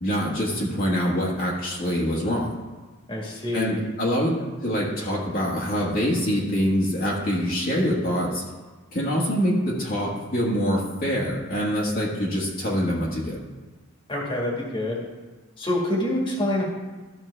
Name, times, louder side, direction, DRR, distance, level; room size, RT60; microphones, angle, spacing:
voice 1, 0.0-2.5 3.5-4.3 4.6-8.4 8.9-13.4, equal, 45° left, -5 dB, 1.5 m, -25 dB
voice 2, 3.1-3.8 14.1-15.0 15.6-16.6, left 1 dB, 25° left, -2 dB, 1.7 m, -26 dB
13.5 x 6.0 x 3.3 m, 1.3 s
head